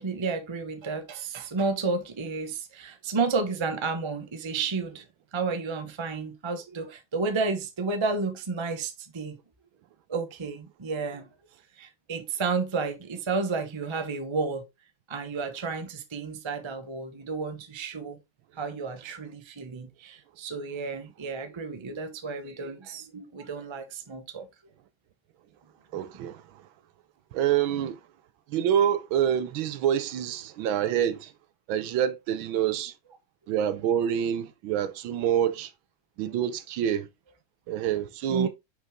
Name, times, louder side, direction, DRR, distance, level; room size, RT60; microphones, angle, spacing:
voice 1, 0.0-5.0 5.3-9.4 10.1-11.3 11.8-14.7 15.1-18.2 18.6-24.5 38.3-38.5, right 4 dB, 30° right, 0.5 m, -31 dB
voice 2, 25.9-26.7 27.3-28.1 28.5-31.3 31.7-33.0 33.5-35.7 36.2-37.1 37.7-38.5, right 9 dB, 80° right, 1.5 m, -27 dB
6.0 x 5.4 x 3.5 m
omnidirectional pair, 2.2 m